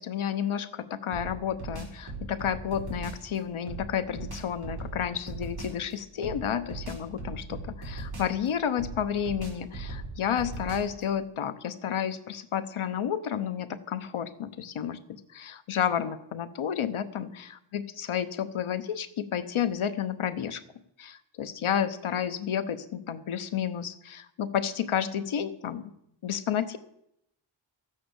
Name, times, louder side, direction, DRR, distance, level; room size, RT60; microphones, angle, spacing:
voice 1, 0.0-20.6 21.0-25.9 26.2-26.8, left 9 dB, 85° left, 10 dB, 1.1 m, -31 dB
sound 1, 1.1-3.3 3.7-5.8 6.2-8.5 8.8-11.0, right 3 dB, 50° right, 5.0 m, -39 dB
13.0 x 8.6 x 7.0 m, 0.77 s
wide cardioid pair, 140°, 48 cm